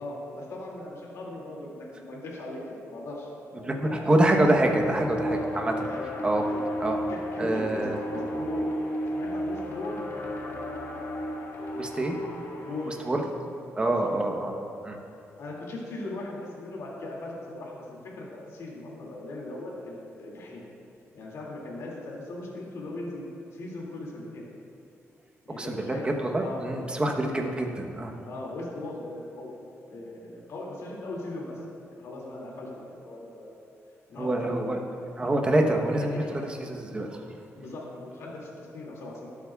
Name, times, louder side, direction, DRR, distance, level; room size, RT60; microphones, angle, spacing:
voice 1, 0.0-4.1 5.2-5.5 5.8-6.0 6.4-6.6 7.1-8.7 9.1-10.0 12.6-13.0 13.8-14.1 15.4-17.8 18.1-20.6 21.1-23.3 23.5-24.5 25.5-26.1 26.4-27.3 28.2-29.6 29.9-31.6 31.9-33.5 34.1-34.7 36.1-36.3 37.6-39.3, left 2 dB, 75° left, -3 dB, 2.3 m, -39 dB
voice 2, 3.6-5.7 6.2-6.5 6.8-7.0 7.4-8.0 11.8-12.2 12.9-13.2 13.8-14.5 14.8-15.0 25.6-28.2 34.2-34.8 35.2-37.2, right 1 dB, 20° right, 2 dB, 1.0 m, -26 dB
sound 1, 3.8-13.2, equal, 55° left, 1.4 m, -33 dB
19.5 x 8.3 x 2.4 m, 2.6 s
wide cardioid pair, 155°, 5 cm